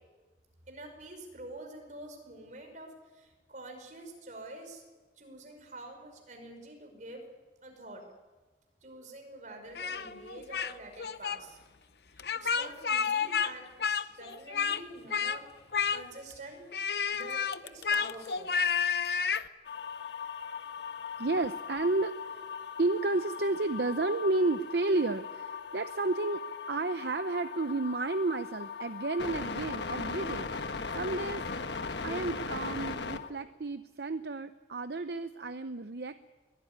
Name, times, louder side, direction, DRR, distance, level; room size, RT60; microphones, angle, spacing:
voice 1, 0.7-4.8 5.2-7.2 7.6-8.0 8.8-11.6 12.3-18.5, right 2 dB, 45° right, 4 dB, 5.3 m, -47 dB
Speech, 9.8-10.7 11.0-11.4 12.2-13.5 13.8-14.8 15.1-15.4 15.7-16.3 16.7-19.5, left 6 dB, 65° left, 0.8 m, -30 dB
sound 1, 19.6-33.3, left 5 dB, 85° left, 1.3 m, -39 dB
voice 2, 21.2-22.1 22.8-31.4 32.0-36.2, right 2 dB, 65° right, 10 dB, 0.7 m, -32 dB
23.5 x 17.5 x 9.6 m, 1.3 s
head